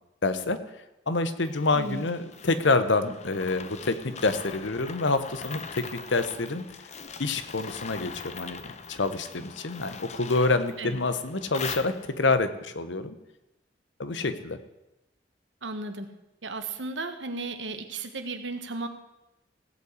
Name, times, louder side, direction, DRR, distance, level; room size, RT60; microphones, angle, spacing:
voice 1, 0.2-0.6 1.1-6.6 7.2-13.1 14.0-14.6, left 3 dB, 80° left, 11 dB, 1.0 m, -27 dB
sound 1, 1.4-12.4, left 5 dB, 40° left, 0.7 m, -42 dB
voice 2, 1.7-2.1 10.8-11.0 15.6-16.1 16.4-18.9, right 3 dB, 80° right, 8 dB, 1.4 m, -35 dB
16.5 x 5.8 x 8.3 m, 0.95 s
head